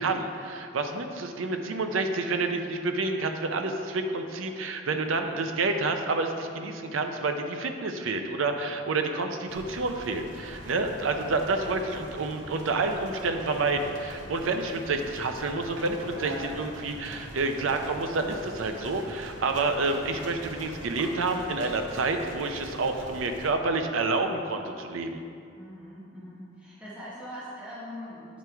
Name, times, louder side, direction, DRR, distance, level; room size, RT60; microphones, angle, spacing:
voice 1, 0.0-25.2, right 3 dB, 90° right, 6 dB, 0.5 m, -29 dB
sound 1, 9.5-23.5, right 1 dB, 70° right, 1.0 m, -43 dB
voice 2, 25.6-28.4, equal, 5° right, -10 dB, 1.3 m, -42 dB
9.3 x 3.4 x 4.5 m, 2.4 s
head